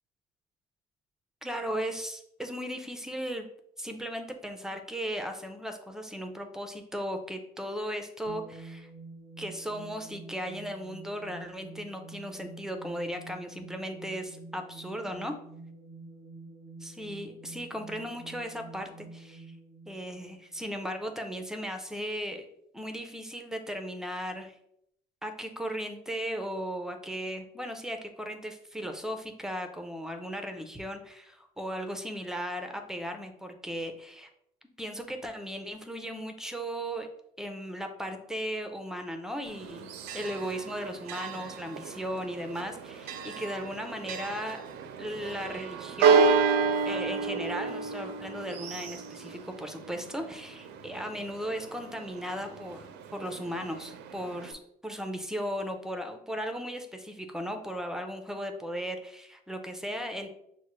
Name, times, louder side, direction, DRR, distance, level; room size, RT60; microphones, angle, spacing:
voice 1, 1.4-3.5 3.8-8.9 9.4-15.3 16.8-19.5 19.9-22.5 22.7-24.5 25.2-34.3 34.8-37.1 37.4-39.9 40.1-44.6 45.0-46.3 46.8-60.3, equal, 5° right, 6 dB, 0.5 m, -36 dB
sound 1, 8.2-21.1, right 3 dB, 50° left, 1.1 m, -48 dB
Church bell, 39.5-54.5, right 5 dB, 85° right, 0.5 m, -31 dB
6.1 x 2.1 x 3.0 m, 0.74 s
cardioid pair, 110°, 17 cm